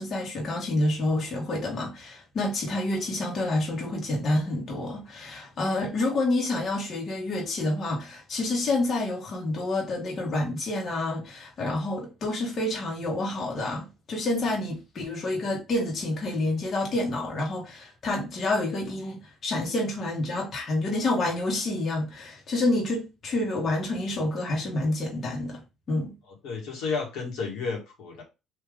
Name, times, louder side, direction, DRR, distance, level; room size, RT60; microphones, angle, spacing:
voice 1, 0.0-25.6 25.9-26.1, left 2 dB, 50° left, 1.3 m, -28 dB
voice 2, 26.3-28.2, left 4 dB, 75° left, 1.6 m, -32 dB
3.4 x 2.7 x 3.7 m
supercardioid pair, 85°, 0 cm